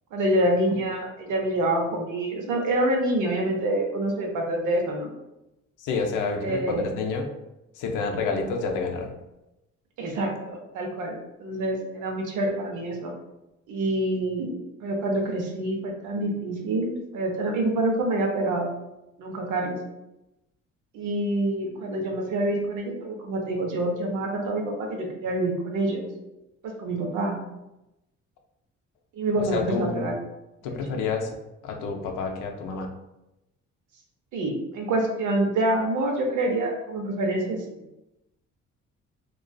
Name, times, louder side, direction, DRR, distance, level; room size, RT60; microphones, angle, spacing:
voice 1, 0.1-5.1 6.4-6.9 10.0-13.1 13.7-18.7 19.2-19.8 20.9-26.1 26.6-27.4 29.1-30.2 30.7-30.8 34.3-37.8, right 1 dB, 80° right, 1 dB, 0.6 m, -27 dB
voice 2, 5.8-7.3 7.8-9.1 29.5-30.1 30.6-31.3 31.6-32.9, left 4 dB, 85° left, 3 dB, 0.5 m, -28 dB
2.5 x 2.3 x 2.2 m, 0.93 s
cardioid pair, 90°, 30 cm